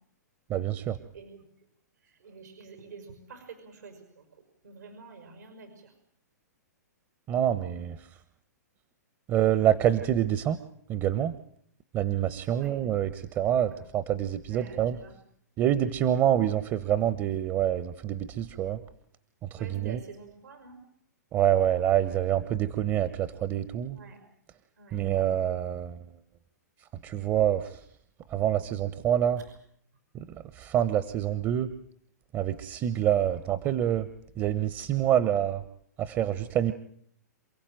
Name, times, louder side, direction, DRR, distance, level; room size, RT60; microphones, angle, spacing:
voice 1, 0.5-1.0 7.3-8.0 9.3-10.6 10.9-11.3 11.9-15.0 15.6-18.8 19.5-20.0 21.3-24.0 24.9-26.0 27.0-27.8 28.3-29.4 30.1-30.3 30.5-31.7 32.3-34.1 34.4-35.6 36.0-36.7, right 11 dB, 30° right, 13 dB, 1.1 m, -26 dB
voice 2, 2.2-3.9 4.6-5.7 12.5-12.7 14.5-15.1 19.5-20.8 24.0-24.2 24.8-25.0, right 5 dB, 85° right, 6 dB, 5.8 m, -47 dB
28.0 x 16.0 x 9.1 m, 0.66 s
hypercardioid pair, 125°, 10 cm